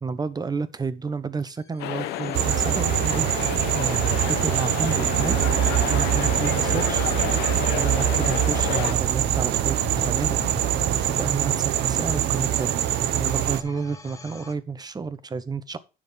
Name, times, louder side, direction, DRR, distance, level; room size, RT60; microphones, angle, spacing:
voice 1, 0.0-5.4 5.7-7.1 7.7-10.4 10.9-12.7 13.1-15.8, right 4 dB, 25° right, 1.1 m, -31 dB
sound 1, 1.4-14.5, left 3 dB, 20° left, 1.3 m, -41 dB
sound 2, 1.8-8.9, left 13 dB, 85° left, 0.8 m, -30 dB
sound 3, 2.3-13.6, right 12 dB, 80° right, 0.9 m, -23 dB
9.8 x 6.5 x 5.2 m
cardioid pair, 110°, 17 cm